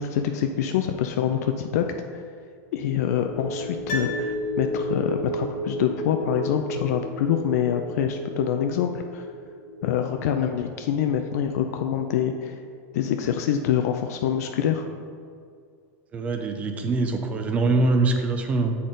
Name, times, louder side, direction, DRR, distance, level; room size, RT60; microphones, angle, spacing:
voice 1, 0.0-1.8 2.1-2.2 2.7-9.3 9.8-12.5 12.9-14.9, left 9 dB, 70° left, 5 dB, 0.4 m, -25 dB
sound 1, 3.1-13.7 14.1-14.2, right 1 dB, 30° left, 0.7 m, -34 dB
Piano, 3.9-5.1 5.4-5.5, left 1 dB, 45° left, 1.2 m, -35 dB
voice 2, 16.1-18.8, right 3 dB, 15° right, 5 dB, 0.4 m, -23 dB
8.3 x 4.2 x 3.8 m, 2.2 s
supercardioid pair, 170°, 9 cm